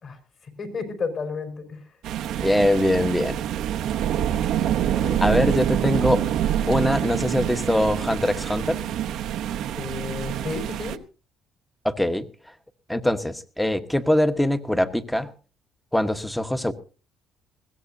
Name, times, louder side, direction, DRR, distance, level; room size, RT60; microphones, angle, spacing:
voice 1, 0.0-1.8 4.7-5.4 9.7-11.0, left 4 dB, 50° left, 6 dB, 4.9 m, -33 dB
sound 1, 2.0-11.0, right 10 dB, 75° right, 0.8 m, -26 dB
voice 2, 2.4-3.4 5.2-6.2 6.7-8.8 11.8-12.2 12.9-15.3 15.9-16.7, left 1 dB, 5° left, 10 dB, 1.1 m, -22 dB
21.0 x 16.0 x 2.7 m, 0.35 s
cardioid pair, 105°, 0 cm